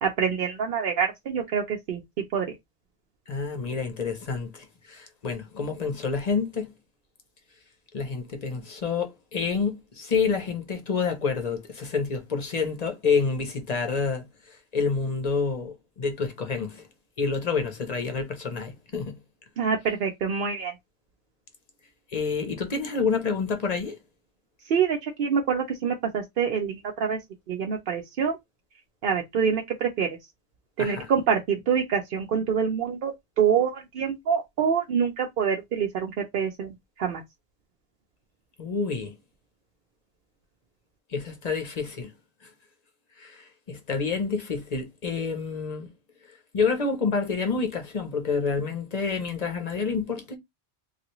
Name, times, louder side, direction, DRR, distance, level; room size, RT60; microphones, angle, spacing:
voice 1, 0.0-2.0 2.3-2.5 19.6-20.7 24.6-27.2 27.5-28.4 29.0-30.1 30.8-37.2, right 7 dB, 60° right, 0.7 m, -26 dB
voice 2, 3.3-6.7 7.9-14.3 14.7-16.8 17.2-19.2 22.1-23.9 30.8-31.1 38.6-39.1 41.1-42.1 43.2-45.9 46.5-50.4, left 5 dB, 40° left, 0.8 m, -28 dB
3.2 x 2.4 x 2.9 m
omnidirectional pair, 1.1 m